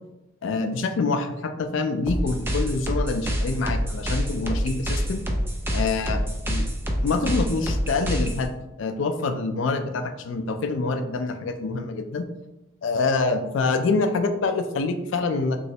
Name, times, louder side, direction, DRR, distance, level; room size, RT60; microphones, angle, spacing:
voice 1, 0.4-5.2 5.7-6.7 7.0-8.5 8.8-12.3 12.8-15.6, left 3 dB, 70° left, 8 dB, 0.4 m, -26 dB
sound 1, 2.1-8.5, equal, 10° right, 0.3 m, -27 dB
3.1 x 3.0 x 2.7 m, 0.93 s
head